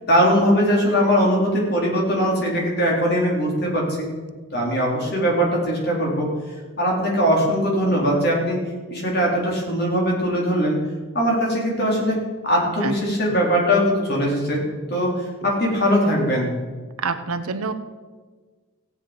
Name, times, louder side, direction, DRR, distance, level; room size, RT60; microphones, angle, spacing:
voice 1, 0.1-4.1 4.5-6.3 6.8-8.6 8.9-10.8 11.1-12.2 12.4-14.6 14.9-16.5, equal, 45° left, -2 dB, 3.7 m, -20 dB
voice 2, 17.0-17.7, right 4 dB, 85° right, 10 dB, 0.9 m, -26 dB
15.5 x 8.9 x 5.2 m, 1.4 s
head